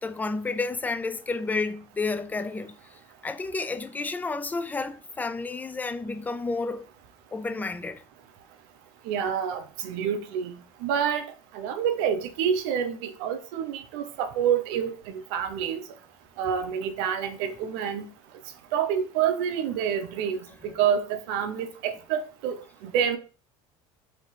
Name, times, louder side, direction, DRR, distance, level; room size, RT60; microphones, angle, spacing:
voice 1, 0.0-6.9 7.3-8.0, left 3 dB, 10° left, 0.3 m, -31 dB
voice 2, 9.0-11.3 11.5-15.8 16.4-18.1 18.7-23.2, right 8 dB, 75° right, 0.7 m, -28 dB
3.2 x 2.8 x 4.4 m
supercardioid pair, 105°, 14 cm